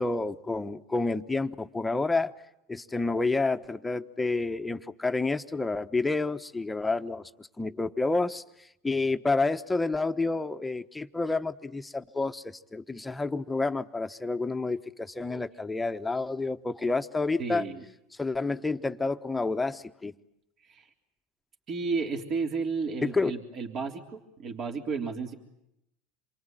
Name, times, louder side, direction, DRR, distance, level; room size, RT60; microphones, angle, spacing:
voice 1, 0.0-2.4 2.7-8.4 8.8-17.6 18.2-20.1 23.0-23.3, left 3 dB, 10° left, 8 dB, 1.1 m, -29 dB
voice 2, 17.4-17.8 20.6-20.9 21.7-25.3, right 4 dB, 45° right, 2 dB, 3.4 m, -32 dB
27.5 x 23.0 x 9.1 m, 0.82 s
hypercardioid pair, 95°, 0 cm